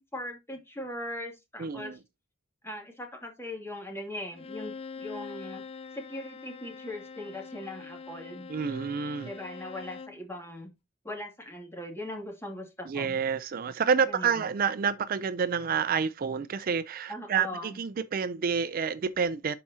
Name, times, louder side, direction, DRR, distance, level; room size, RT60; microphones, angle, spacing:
voice 1, 0.0-2.0 2.6-5.6 5.9-8.5 9.2-10.7 11.0-13.2 14.0-14.5 17.1-17.8, left 1 dB, 10° left, 2.4 m, -40 dB
voice 2, 1.6-1.9 8.5-9.3 12.9-19.6, right 6 dB, 45° right, 0.4 m, -29 dB
Bowed string instrument, 4.3-10.2, left 5 dB, 30° left, 0.4 m, -44 dB
11.5 x 4.8 x 2.8 m
head